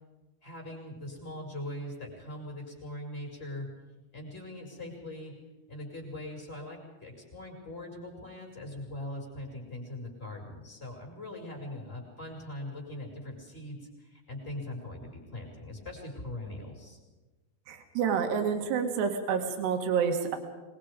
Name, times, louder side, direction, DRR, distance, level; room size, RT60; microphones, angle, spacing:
voice 1, 0.4-3.7 4.1-5.3 5.7-17.0, left 1 dB, 15° left, -1 dB, 5.8 m, -41 dB
voice 2, 17.7-20.4, right 6 dB, 80° right, 5 dB, 4.0 m, -28 dB
25.0 x 21.5 x 5.2 m, 1.2 s
omnidirectional pair, 4.8 m